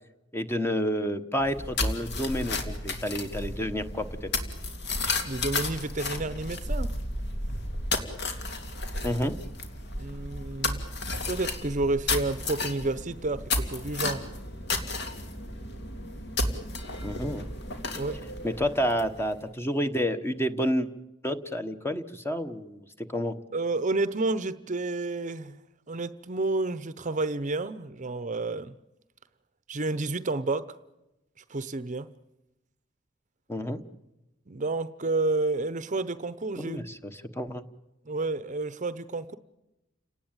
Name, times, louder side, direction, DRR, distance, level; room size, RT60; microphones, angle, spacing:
voice 1, 0.3-4.3 9.0-9.4 17.0-17.5 18.4-20.9 21.2-23.4 33.5-33.8 36.6-37.6, equal, 15° left, 1.2 m, -30 dB
sound 1, 1.4-19.3, left 2 dB, 60° left, 2.8 m, -33 dB
voice 2, 5.2-7.0 10.0-10.8 11.3-14.3 17.9-18.2 23.5-25.6 25.9-28.7 29.7-30.8 31.5-32.1 34.5-36.8 38.1-39.4, right 2 dB, 40° right, 0.8 m, -30 dB
30.0 x 18.5 x 8.9 m
head